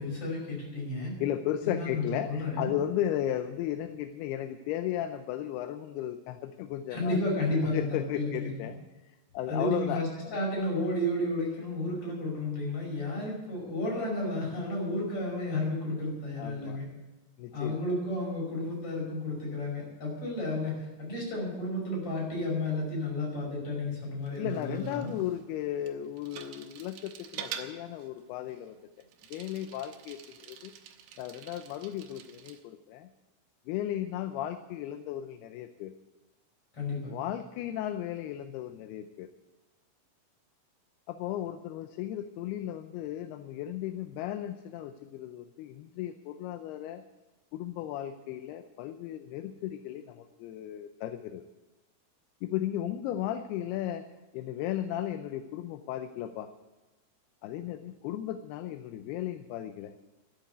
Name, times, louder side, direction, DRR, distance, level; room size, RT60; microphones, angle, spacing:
voice 1, 0.0-1.1 1.6-2.7 6.9-8.5 9.5-16.8 17.5-25.1 36.7-37.1, left 1 dB, 35° left, -2 dB, 6.3 m, -32 dB
voice 2, 1.2-7.2 7.7-8.8 9.3-10.4 16.4-16.8 17.4-17.8 24.4-28.8 29.3-30.7 31.2-33.1 33.7-35.9 37.1-39.3 41.1-47.0 47.5-51.5 52.4-54.1 54.3-56.5 57.4-59.9, left 11 dB, 80° left, 9 dB, 2.5 m, -35 dB
Bicycle, 24.2-32.6, right 9 dB, 85° right, 3.2 m, -47 dB
13.0 x 10.0 x 8.2 m, 1.1 s
omnidirectional pair, 4.8 m